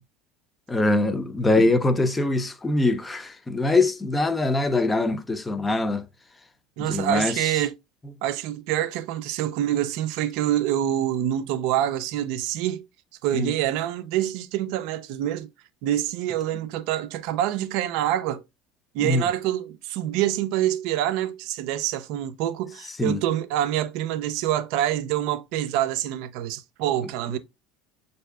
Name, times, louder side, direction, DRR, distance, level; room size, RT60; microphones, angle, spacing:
voice 1, 0.7-6.0 6.9-7.3 13.3-13.5 19.0-19.2 23.0-23.2 27.3-27.4, left 2 dB, 20° left, 0.6 m, -23 dB
voice 2, 6.8-7.7 8.2-12.9 13.2-15.5 15.8-18.4 18.9-27.4, right 12 dB, 65° right, 0.4 m, -26 dB
6.2 x 2.7 x 2.3 m
hypercardioid pair, 80°, 0 cm